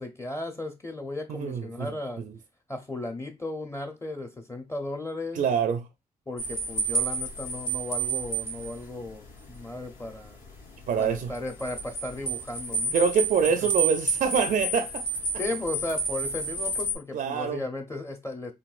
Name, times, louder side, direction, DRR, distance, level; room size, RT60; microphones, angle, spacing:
voice 1, 0.0-2.2 2.7-5.4 6.3-10.4 11.0-12.9 13.6-13.7 15.4-18.5, left 2 dB, 15° left, 0.6 m, -35 dB
voice 2, 1.3-1.9 5.4-5.9 10.9-11.3 12.9-15.0 17.1-17.6, right 6 dB, 60° right, 0.4 m, -25 dB
sound 1, 6.4-16.9, right 3 dB, 60° left, 0.9 m, -31 dB
3.9 x 2.2 x 2.4 m
cardioid pair, 65°, 15 cm